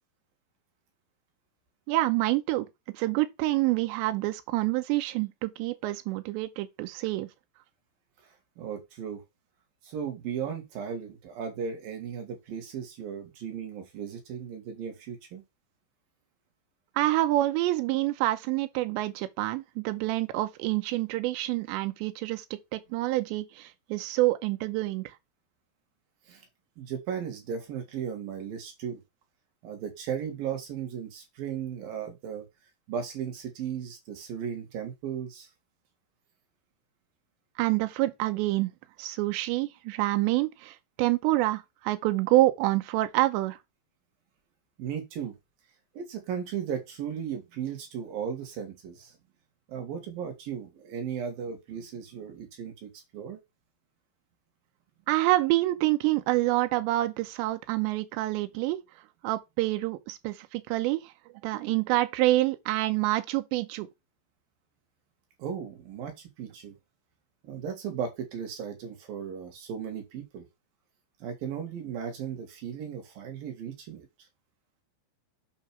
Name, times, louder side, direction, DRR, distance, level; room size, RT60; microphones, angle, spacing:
voice 1, 1.9-2.7 2.9-7.3 17.0-25.1 37.6-38.7 39.0-43.6 55.1-58.8 59.2-61.1 61.4-63.9, right 17 dB, 85° right, 3.0 m, -27 dB
voice 2, 8.2-9.2 9.8-15.4 26.3-26.5 26.8-29.0 29.6-32.5 32.9-35.5 44.8-45.4 45.9-49.2 49.7-53.4 65.4-66.7 67.4-70.5 71.2-74.1, right 7 dB, 60° right, 3.1 m, -36 dB
8.8 x 3.0 x 6.0 m
omnidirectional pair, 5.1 m